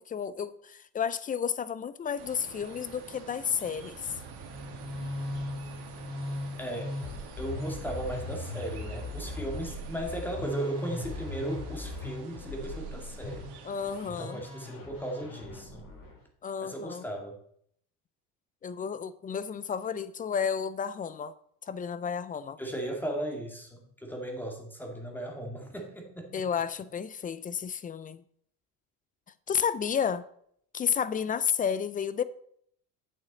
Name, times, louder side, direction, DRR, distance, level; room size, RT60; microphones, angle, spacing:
voice 1, 0.0-4.1 13.6-14.4 16.4-17.0 18.6-21.3 21.6-22.6 26.3-28.2 29.5-30.2 30.7-32.2, left 7 dB, 20° left, 0.3 m, -31 dB
sound 1, 2.2-14.1, right 6 dB, 60° right, 2.0 m, -48 dB
Musical instrument, 4.4-16.2, left 2 dB, 45° left, 3.3 m, -38 dB
voice 2, 6.6-7.0 7.4-13.5 14.0-15.8 16.6-17.4 22.6-26.4, right 1 dB, 5° left, 2.2 m, -37 dB
8.1 x 7.1 x 4.0 m
supercardioid pair, 100°, 43 cm